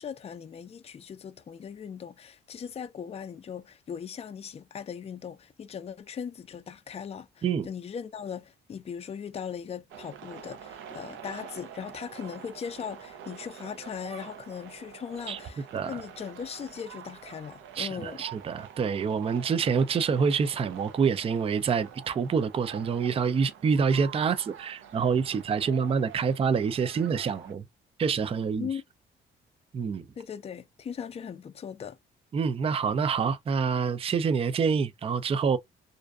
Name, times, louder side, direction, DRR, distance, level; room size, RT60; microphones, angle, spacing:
voice 1, 0.0-18.2 28.6-28.8 30.2-32.0, left 7 dB, 30° left, 0.4 m, -39 dB
sound 1, 9.9-27.5, right 8 dB, 75° right, 0.6 m, -46 dB
voice 2, 17.8-27.6 28.0-28.7 29.7-30.1 32.3-35.6, right 6 dB, 30° right, 0.4 m, -27 dB
2.5 x 2.2 x 2.3 m
cardioid pair, 90°, 20 cm